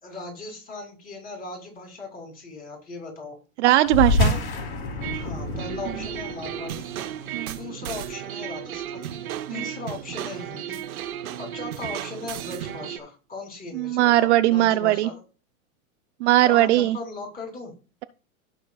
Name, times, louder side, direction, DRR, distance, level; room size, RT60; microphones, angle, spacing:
voice 1, 0.0-3.4 4.2-4.4 5.1-6.9 7.5-9.2 9.5-10.8 11.4-15.2 16.4-17.7, left 3 dB, 20° left, 1 dB, 3.1 m, -38 dB
voice 2, 3.6-4.4 7.3-7.6 9.5-9.6 13.7-15.1 16.2-17.0, right 15 dB, 55° right, 11 dB, 0.5 m, -19 dB
sound 1, 3.9-8.7, left 3 dB, 70° left, 3.2 m, -28 dB
sound 2, 5.0-13.0, right 11 dB, 85° right, 1.1 m, -34 dB
16.5 x 5.7 x 2.3 m, 0.34 s
supercardioid pair, 140°, 42 cm